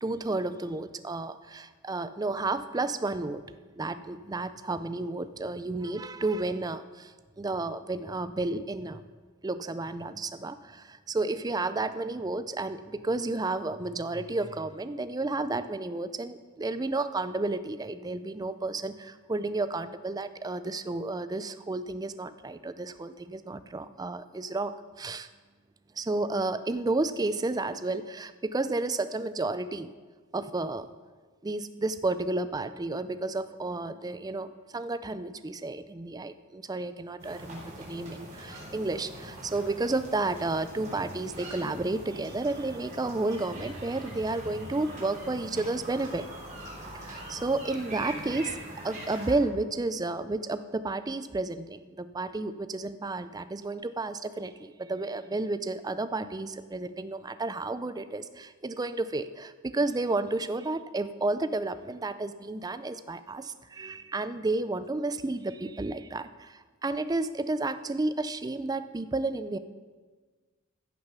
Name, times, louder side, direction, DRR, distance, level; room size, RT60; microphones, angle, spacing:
voice 1, 0.0-3.4 3.8-9.0 9.4-25.3 26.0-29.9 30.3-30.9 31.4-46.3 47.0-69.6, right 2 dB, 20° right, 12 dB, 0.4 m, -32 dB
sound 1, 37.2-49.4, right 1 dB, 35° right, 3.9 m, -42 dB
15.0 x 6.5 x 6.1 m, 1.4 s
head